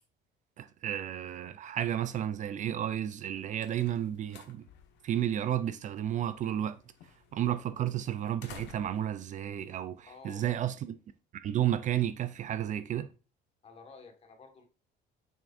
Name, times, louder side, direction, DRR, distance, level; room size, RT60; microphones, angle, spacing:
voice 1, 0.6-4.7 5.0-6.8 7.3-11.0 11.4-13.1, right 11 dB, 40° right, 0.4 m, -32 dB
sound 1, 3.1-10.6, left 8 dB, 75° left, 1.3 m, -56 dB
voice 2, 10.0-10.5 13.6-14.7, left 4 dB, 35° left, 1.6 m, -52 dB
7.2 x 5.9 x 2.5 m
cardioid pair, 155°, 18 cm